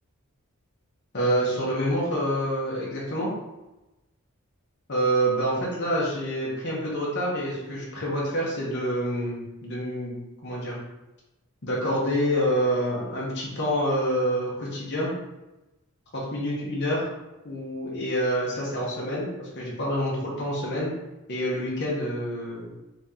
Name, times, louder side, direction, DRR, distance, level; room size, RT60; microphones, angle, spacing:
voice 1, 1.1-3.3 4.9-10.1 10.4-10.8 11.6-15.1 16.1-17.1 17.4-20.9 21.3-22.7, equal, 50° left, -5 dB, 0.9 m, -27 dB
3.0 x 2.9 x 3.7 m, 1.0 s
head